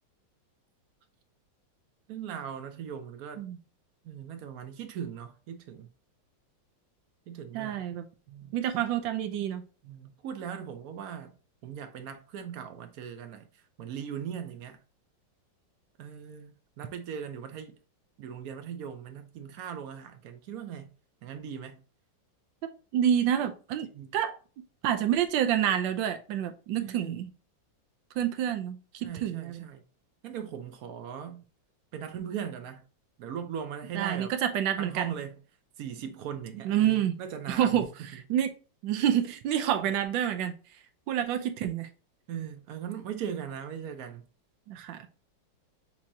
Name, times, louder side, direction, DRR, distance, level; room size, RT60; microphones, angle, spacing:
voice 1, 2.1-3.4 4.0-5.9 7.3-7.8 8.3-8.6 9.8-11.3 11.6-13.5 13.8-14.8 16.0-17.7 18.2-20.9 21.2-21.8 23.9-24.2 26.8-27.2 29.0-29.8 30.2-31.4 31.9-32.8 33.2-34.4 34.8-35.4 35.8-38.1 42.3-44.3, right 8 dB, 70° right, 0.9 m, -39 dB
voice 2, 7.5-8.1 8.5-9.6 22.6-24.4 24.8-27.3 28.2-29.6 33.9-35.1 36.6-37.2 37.5-37.9 38.3-38.5 38.8-40.5 41.1-41.9 44.7-45.1, right 10 dB, 85° right, 1.4 m, -28 dB
6.2 x 2.9 x 2.7 m
omnidirectional pair, 2.0 m